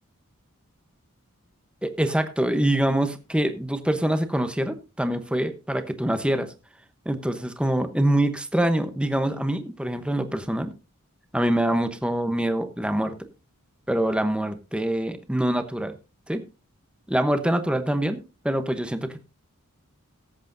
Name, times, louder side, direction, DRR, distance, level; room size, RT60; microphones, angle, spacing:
voice 1, 1.8-6.5 7.0-10.7 11.3-13.3 13.9-15.9 16.3-16.4 17.1-19.2, right 1 dB, 5° right, 9 dB, 0.9 m, -25 dB
19.0 x 8.2 x 2.6 m, 0.29 s
head